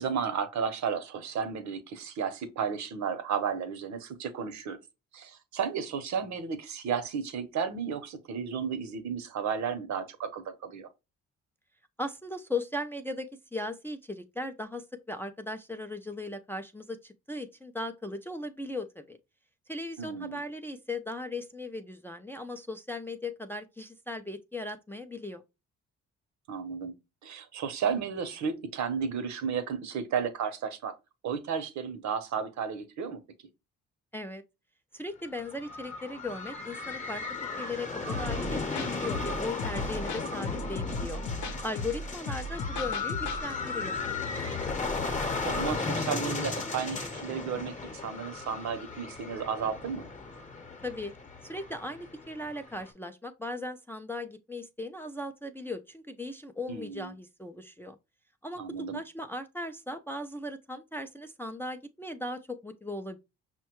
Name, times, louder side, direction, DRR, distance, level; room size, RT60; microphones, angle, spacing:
voice 1, 0.0-4.8 5.1-10.9 20.0-20.4 26.5-27.0 27.2-30.9 31.2-33.2 45.2-50.1 56.7-57.1 58.6-59.0, right 7 dB, 65° right, 0.8 m, -33 dB
voice 2, 12.0-19.2 19.7-25.4 34.1-34.4 34.9-37.2 37.6-41.2 41.6-43.9 50.8-51.1 51.4-58.0 58.4-63.2, left 2 dB, 10° left, 0.4 m, -38 dB
sound 1, 35.2-52.9, left 4 dB, 25° left, 0.9 m, -35 dB
sound 2, 38.1-43.4, left 2 dB, 70° left, 0.7 m, -36 dB
5.4 x 2.2 x 2.9 m
cardioid pair, 90°, 30 cm